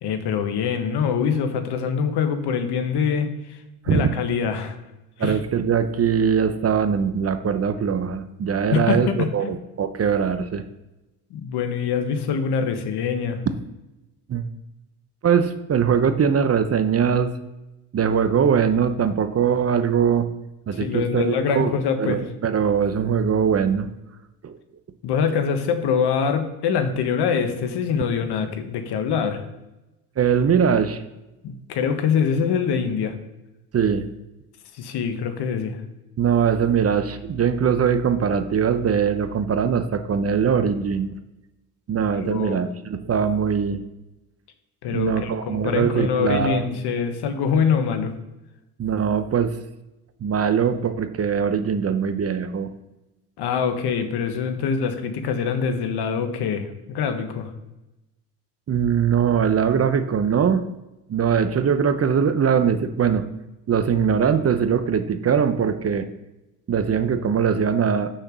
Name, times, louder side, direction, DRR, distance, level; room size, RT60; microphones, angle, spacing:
voice 1, 0.0-3.6 3.9-4.7 5.2-5.4 8.7-9.5 11.3-13.4 20.7-22.2 25.0-29.5 31.4-33.2 34.7-35.8 42.2-42.6 44.8-48.1 53.4-57.5, left 6 dB, 60° left, 8 dB, 1.5 m, -24 dB
voice 2, 5.2-10.6 14.3-14.5 15.2-17.3 17.9-20.3 20.7-21.7 22.0-23.9 24.4-24.6 30.2-31.0 33.7-34.1 36.2-41.1 41.9-43.8 44.9-46.6 48.8-49.5 50.2-52.7 58.7-60.6 61.1-63.3 63.7-66.1 66.7-68.2, right 7 dB, 30° right, 10 dB, 0.8 m, -21 dB
6.5 x 5.8 x 6.7 m, 0.98 s
hypercardioid pair, 75°, 45 cm